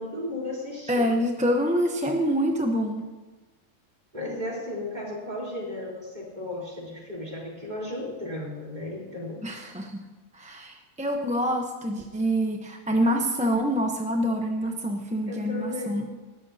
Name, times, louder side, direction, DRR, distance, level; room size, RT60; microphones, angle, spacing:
voice 1, 0.0-1.1 4.1-9.4 15.3-16.1, left 1 dB, 30° right, -5 dB, 4.0 m, -35 dB
voice 2, 0.9-3.1 9.4-10.0 10.3-16.1, equal, 5° right, 2 dB, 0.7 m, -26 dB
20.0 x 12.5 x 2.8 m, 1.2 s
omnidirectional pair, 1.5 m